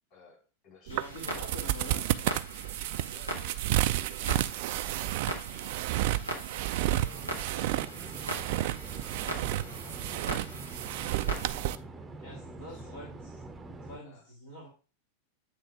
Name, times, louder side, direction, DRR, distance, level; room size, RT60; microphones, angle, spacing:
voice 1, 0.1-1.7 2.0-2.1 3.1-4.4 5.5-8.3 8.9-11.8 12.6-13.1 14.0-14.3, left 4 dB, 40° left, -2 dB, 4.0 m, -58 dB
Clock, 0.9-11.5, equal, 85° left, 1.6 m, -41 dB
voice 2, 0.9-2.0 12.2-13.1 13.8-14.7, left 1 dB, 65° left, -4 dB, 2.2 m, -45 dB
sound 1, 0.9-11.8, right 14 dB, 50° right, 0.3 m, -31 dB
sound 2, 7.1-14.0, right 2 dB, 15° right, 0.7 m, -45 dB
8.2 x 3.3 x 4.7 m, 0.34 s
figure-of-eight pair, 90°, 0 cm